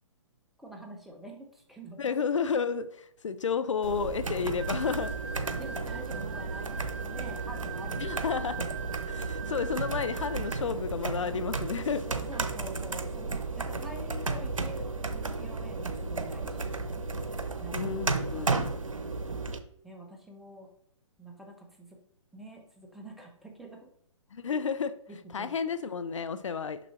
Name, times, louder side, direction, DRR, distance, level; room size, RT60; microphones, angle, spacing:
voice 1, 0.6-2.2 5.5-8.2 12.1-16.8 17.6-18.1 18.3-18.7 19.8-20.7 21.2-21.9 22.3-23.9 24.5-24.6 25.1-25.5, right 1 dB, ahead, 0 dB, 1.1 m, -46 dB
voice 2, 2.0-5.1 8.0-8.7 9.1-12.0 17.7-18.6 24.3-24.9 25.3-26.8, left 6 dB, 70° left, 12 dB, 0.5 m, -31 dB
sound 1, 3.8-19.6, right 3 dB, 85° right, 0.8 m, -33 dB
sound 2, 4.6-10.6, right 8 dB, 40° right, 2.1 m, -42 dB
6.8 x 6.0 x 3.0 m, 0.66 s
figure-of-eight pair, 130°, 17 cm